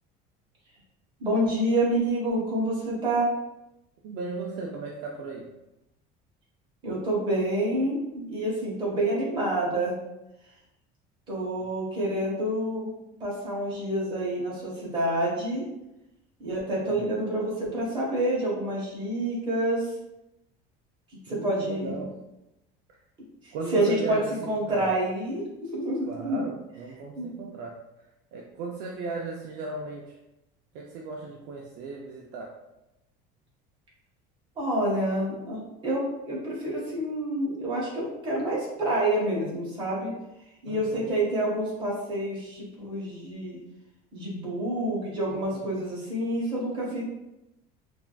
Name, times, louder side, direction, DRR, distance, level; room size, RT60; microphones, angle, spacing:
voice 1, 1.2-3.3 6.8-10.0 11.3-12.9 13.2-15.6 16.4-19.9 21.3-21.9 23.7-25.4 25.7-26.4 27.2-27.3 34.6-40.1 40.6-43.6 44.1-47.0, right 1 dB, 25° right, -6 dB, 1.0 m, -28 dB
voice 2, 4.0-5.5 16.9-17.1 21.3-22.1 23.5-24.9 26.1-27.8 28.3-30.2 30.7-32.5 40.6-41.2 45.3-45.7, right 3 dB, 55° right, -1 dB, 0.4 m, -37 dB
3.3 x 2.4 x 2.2 m, 0.91 s
cardioid pair, 180°, 20 cm